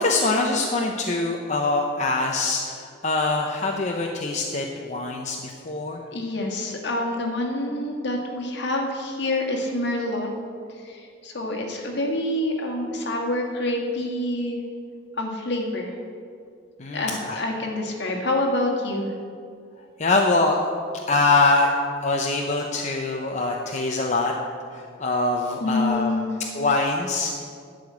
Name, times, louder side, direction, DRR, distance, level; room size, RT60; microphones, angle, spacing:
voice 1, 0.0-6.0 16.8-17.4 20.0-20.6 21.1-21.7 22.0-24.3 24.7-26.1 26.5-27.4, left 3 dB, 40° left, 0 dB, 0.7 m, -23 dB
voice 2, 6.1-10.3 10.7-14.6 15.2-15.9 16.9-19.1 25.6-26.3, left 1 dB, 65° left, 1 dB, 1.7 m, -27 dB
11.5 x 5.0 x 8.5 m, 2.3 s
head